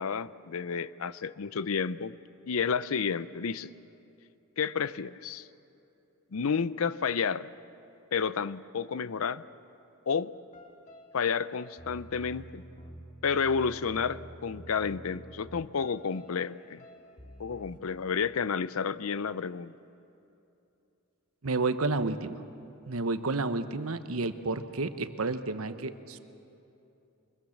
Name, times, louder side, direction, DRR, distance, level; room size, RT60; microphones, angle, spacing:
voice 1, 0.0-2.1 2.5-3.7 4.6-5.5 6.3-7.5 8.1-9.4 10.1-10.3 11.1-12.6 13.2-16.8 17.4-19.7, left 6 dB, 75° left, 16 dB, 0.6 m, -31 dB
sound 1, 10.5-17.8, equal, 35° left, 1.8 m, -49 dB
voice 2, 21.4-22.4 22.9-26.2, right 3 dB, 80° right, 10 dB, 1.0 m, -31 dB
24.0 x 21.0 x 7.2 m, 2.8 s
head